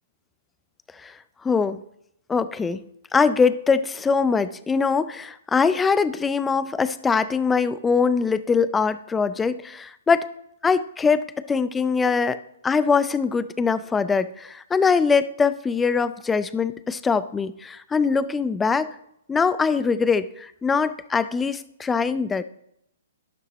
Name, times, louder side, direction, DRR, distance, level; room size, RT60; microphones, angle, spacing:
voice 1, 1.4-1.8 2.3-2.8 3.1-10.3 10.6-18.9 19.3-22.4, left 5 dB, 10° left, 14 dB, 0.4 m, -22 dB
12.0 x 11.0 x 3.0 m, 0.77 s
hypercardioid pair, 135°, 0 cm